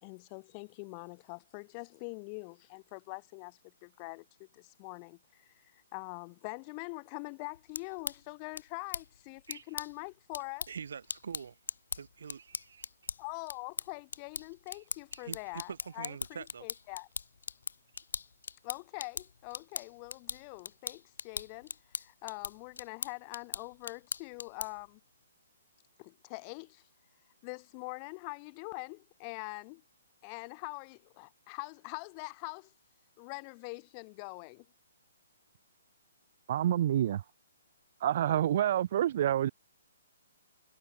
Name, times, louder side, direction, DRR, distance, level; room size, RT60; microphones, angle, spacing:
voice 1, 0.0-10.7 13.2-17.1 18.6-25.0 26.0-26.8 27.4-29.8 30.2-32.7 33.2-34.6, left 35 dB, 25° left, 1.5 m, -44 dB
sound 1, 7.5-24.9, left 6 dB, 75° left, 0.6 m, -42 dB
voice 2, 10.7-11.5 11.9-12.9 15.1-16.7, right 6 dB, 70° right, 2.7 m, -44 dB
voice 3, 36.5-37.2 38.0-39.5, right 11 dB, 40° right, 0.6 m, -27 dB
hypercardioid pair, 170°, 0 cm